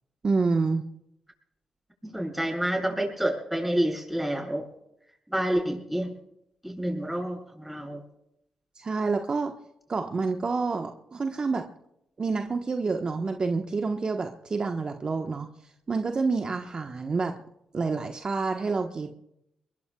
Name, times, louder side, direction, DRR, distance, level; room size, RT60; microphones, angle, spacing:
voice 1, 0.2-0.8 8.8-9.5 9.9-11.6 12.2-15.5 15.9-17.4 17.7-19.1, right 4 dB, 45° right, 4 dB, 1.2 m, -28 dB
voice 2, 2.0-4.7 5.3-6.2 6.6-8.0, right 1 dB, 5° right, 1 dB, 7.7 m, -28 dB
22.5 x 22.0 x 2.4 m, 0.81 s
supercardioid pair, 45°, 2 cm